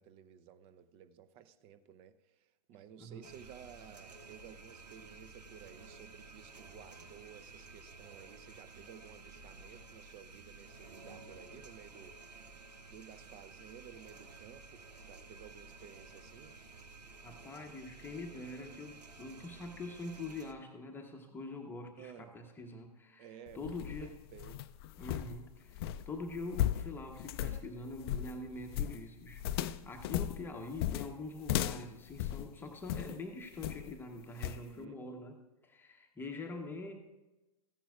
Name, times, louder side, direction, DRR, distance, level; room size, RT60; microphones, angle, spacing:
voice 1, 0.0-12.2 12.9-16.6 16.8-16.9 22.0-22.4 23.2-24.6 27.4-27.6 34.5-35.0, right 8 dB, 30° right, 12 dB, 0.5 m, -55 dB
sound 1, 3.2-20.5, right 3 dB, 85° right, 0.9 m, -53 dB
voice 2, 17.2-23.3 23.5-24.1 25.0-35.4 35.6-37.0, left 2 dB, 10° left, 2 dB, 0.9 m, -44 dB
sound 2, 23.5-33.2 33.6-34.0 34.4-34.7, left 12 dB, 40° left, 0.4 m, -37 dB
15.0 x 10.0 x 2.4 m, 1.0 s
hypercardioid pair, 115°, 20 cm